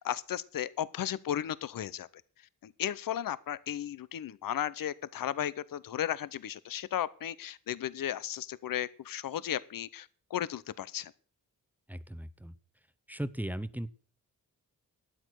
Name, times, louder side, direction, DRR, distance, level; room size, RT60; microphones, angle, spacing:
voice 1, 0.0-2.1 2.6-11.1, left 11 dB, 75° left, 0.8 m, -35 dB
voice 2, 11.9-12.5 13.1-13.9, right 1 dB, 5° right, 0.7 m, -37 dB
12.5 x 9.2 x 6.4 m
wide cardioid pair, 105°, 34 cm